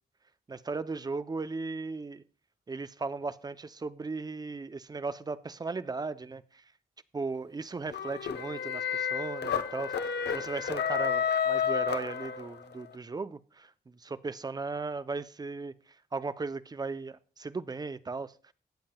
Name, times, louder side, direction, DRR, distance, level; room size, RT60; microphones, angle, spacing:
voice 1, 0.5-2.2 2.7-6.6 7.1-18.5, right 4 dB, 25° right, 0.5 m, -37 dB
sound 1, 7.9-12.7, left 7 dB, 85° left, 0.9 m, -31 dB
19.5 x 7.5 x 2.2 m
wide cardioid pair, 155°, 17 cm